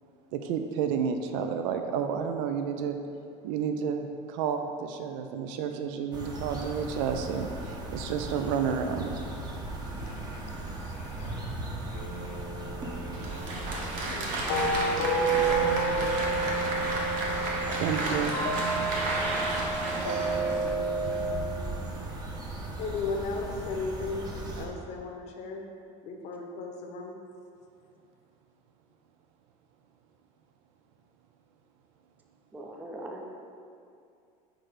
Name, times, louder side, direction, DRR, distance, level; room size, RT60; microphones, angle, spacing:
voice 1, 0.3-3.0 3.4-9.2 17.8-18.3, right 7 dB, 75° right, 6 dB, 0.4 m, -31 dB
sound 1, 6.1-24.7, right 2 dB, 25° right, 0.9 m, -38 dB
voice 2, 9.9-12.4 12.9-13.4 14.1-16.0 22.8-25.6 26.0-27.1, left 4 dB, 45° left, 1 dB, 0.8 m, -38 dB
sound 2, 11.9-21.3, right 3 dB, 80° left, 0.8 m, -31 dB
Applause, 13.1-21.2, right 2 dB, 60° right, 1.0 m, -32 dB
voice 3, 32.5-33.3, right 1 dB, 10° right, 1 dB, 0.5 m, -40 dB
5.9 x 3.3 x 5.0 m, 2.4 s
supercardioid pair, 130°, 16 cm